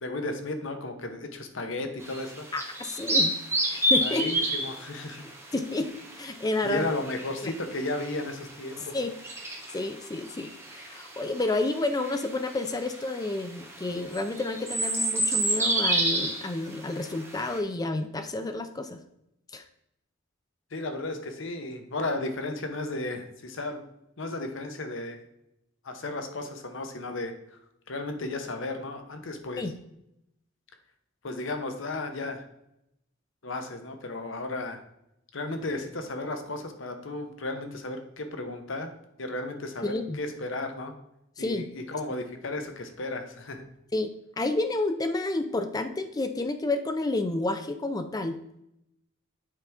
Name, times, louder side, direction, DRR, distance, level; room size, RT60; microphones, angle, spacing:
voice 1, 0.0-2.5 4.0-5.3 6.6-9.0 20.7-23.8 24.2-25.2 25.8-27.6 27.9-29.7 31.2-32.4 33.4-34.8 35.3-38.9 39.2-40.9 41.4-43.6, left 2 dB, 65° left, 6 dB, 0.9 m, -34 dB
sound 1, 2.0-17.6, right 1 dB, 15° right, 1.2 m, -30 dB
voice 2, 2.5-3.3 3.6-4.3 5.5-6.9 7.4-7.5 8.9-9.1 9.7-19.0 19.5-19.6 29.6-29.7 39.8-40.2 41.4-41.7 43.9-48.4, left 2 dB, 20° left, 8 dB, 0.4 m, -30 dB
7.3 x 5.0 x 3.4 m, 0.81 s
head